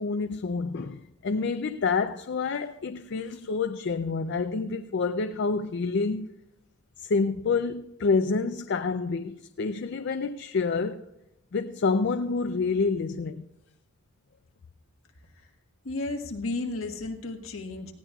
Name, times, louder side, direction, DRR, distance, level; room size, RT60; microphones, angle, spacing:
voice 1, 0.0-6.3 7.0-11.0 11.5-13.5, left 4 dB, 55° left, 0.4 m, -28 dB
voice 2, 15.8-17.9, left 2 dB, 70° left, 1.5 m, -33 dB
19.0 x 15.5 x 2.4 m
head